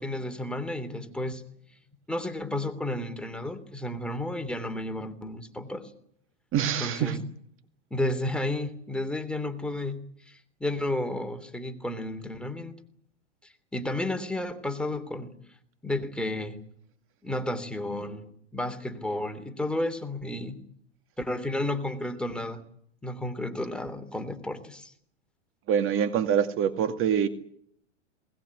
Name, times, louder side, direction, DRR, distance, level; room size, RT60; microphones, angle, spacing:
voice 1, 0.0-1.4 2.1-5.9 6.8-7.2 7.9-10.0 10.3-12.7 13.7-15.4 15.8-16.6 17.2-20.6 21.2-22.6 23.0-24.9, left 1 dB, 5° left, 7 dB, 3.2 m, -32 dB
voice 2, 6.5-7.2 25.7-27.3, right 8 dB, 35° right, 9 dB, 2.3 m, -25 dB
20.5 x 19.5 x 9.8 m, 0.65 s
hypercardioid pair, 115°, 36 cm